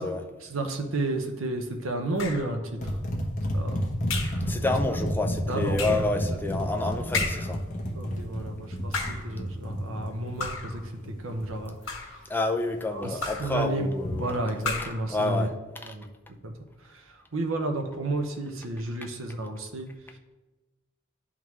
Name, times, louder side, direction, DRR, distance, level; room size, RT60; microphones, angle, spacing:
voice 1, 0.4-3.0 3.5-3.8 4.6-4.7 5.5-6.1 6.5-6.6 7.9-12.2 12.9-15.5 15.8-16.0 16.4-16.5 16.8-20.2, right 2 dB, 75° right, 4 dB, 0.8 m, -32 dB
sound 1, 2.2-2.6 4.1-4.5 5.7-6.1 7.1-7.6 8.8-9.3 10.4-10.8 11.6-12.2 13.2-13.6 14.6-15.1, left 4 dB, 80° left, 1.2 m, -32 dB
sound 2, 2.8-11.6 14.0-14.3, equal, 40° left, 1.0 m, -31 dB
voice 2, 4.4-7.6 12.3-14.3 15.1-15.5, left 2 dB, 10° left, 3 dB, 0.4 m, -28 dB
11.0 x 3.7 x 3.1 m, 1.1 s
head